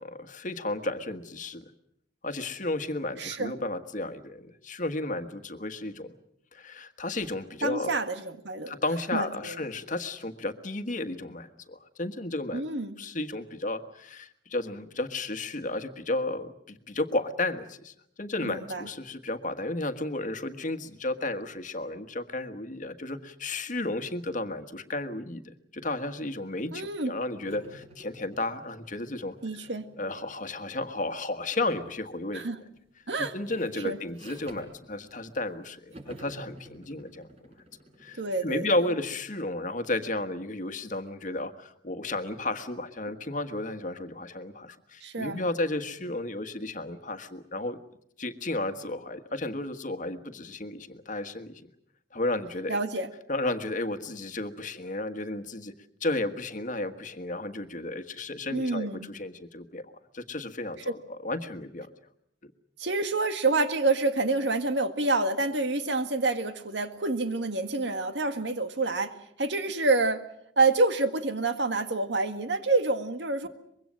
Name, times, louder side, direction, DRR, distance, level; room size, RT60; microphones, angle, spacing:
voice 1, 0.0-1.6 2.2-6.1 6.5-8.0 8.7-12.7 13.0-29.3 30.0-32.4 33.3-37.3 38.0-47.8 48.2-51.6 52.1-52.8 53.3-55.7 56.0-61.9, left 2 dB, 45° left, 9 dB, 1.5 m, -33 dB
voice 2, 3.2-3.5 7.6-8.7 9.1-9.6 12.5-13.0 18.4-18.9 26.7-27.1 29.4-29.9 32.3-32.6 33.1-33.3 33.8-34.0 38.2-38.7 45.0-45.4 52.7-53.1 58.5-59.1 62.8-70.3 70.6-73.5, right 3 dB, 70° right, 8 dB, 1.9 m, -27 dB
sound 1, 27.5-30.8 31.7-32.0 32.3-35.6 35.9-39.4, right 1 dB, 35° right, 6.3 m, -51 dB
24.0 x 22.5 x 7.6 m, 0.73 s
head